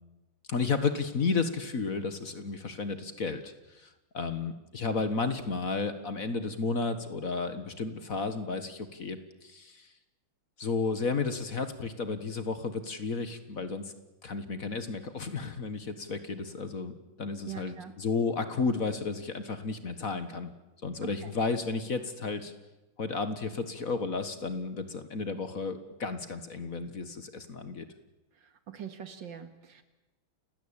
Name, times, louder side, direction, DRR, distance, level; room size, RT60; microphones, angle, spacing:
voice 1, 0.5-9.9 10.6-13.8 14.2-20.5 20.8-22.5 23.0-27.9, left 4 dB, 45° left, 10 dB, 1.8 m, -33 dB
voice 2, 17.4-17.9 21.0-21.3 28.4-29.8, right 8 dB, 65° right, 9 dB, 2.5 m, -43 dB
29.5 x 16.5 x 8.9 m, 1.0 s
omnidirectional pair, 2.2 m